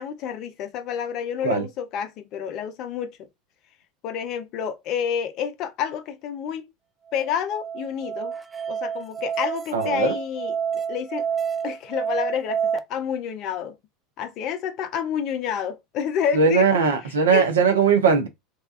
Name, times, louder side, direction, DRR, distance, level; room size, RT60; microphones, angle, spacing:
voice 1, 0.0-3.2 4.0-6.7 7.1-8.3 8.7-11.3 11.6-13.8 14.2-16.7 17.3-17.5, left 8 dB, 45° left, 0.5 m, -29 dB
Musical instrument, 7.1-12.8, right 7 dB, 15° right, 0.3 m, -28 dB
voice 2, 9.7-10.1 16.3-18.3, right 5 dB, 70° right, 0.6 m, -19 dB
2.7 x 2.2 x 2.4 m
figure-of-eight pair, 75°, 0 cm